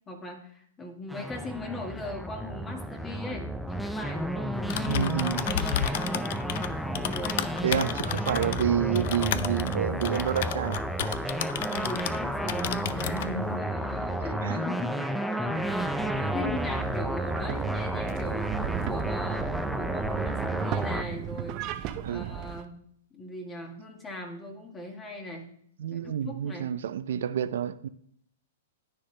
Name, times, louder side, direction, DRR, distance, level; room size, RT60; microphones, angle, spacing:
voice 1, 0.1-5.1 5.4-6.2 7.1-7.6 11.7-18.5 18.9-21.6 22.1-22.8 23.1-25.5 25.9-26.7, left 1 dB, 15° left, 1.7 m, -39 dB
sound 1, 1.1-21.0, right 1 dB, ahead, 0.6 m, -32 dB
Typing, 4.5-12.2 12.5-13.3, left 10 dB, 60° left, 0.6 m, -33 dB
voice 2, 4.9-5.5 7.6-11.4 14.4-14.6 22.0-22.3 25.8-27.9, right 9 dB, 70° right, 0.5 m, -29 dB
sound 2, 15.5-22.6, right 10 dB, 35° right, 0.7 m, -36 dB
10.0 x 9.8 x 3.3 m
hypercardioid pair, 140°, 0 cm